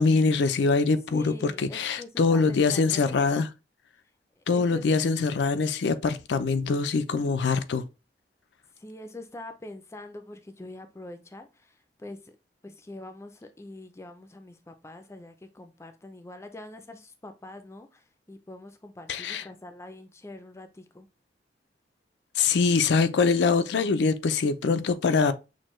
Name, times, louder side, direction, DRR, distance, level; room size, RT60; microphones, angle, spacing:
voice 1, 0.0-3.5 4.5-7.9 19.1-19.4 22.4-25.3, left 4 dB, 75° left, 0.4 m, -23 dB
voice 2, 1.1-3.2 4.4-4.9 8.8-12.3 12.6-21.1, left 1 dB, 15° left, 0.4 m, -44 dB
6.2 x 2.2 x 3.1 m
head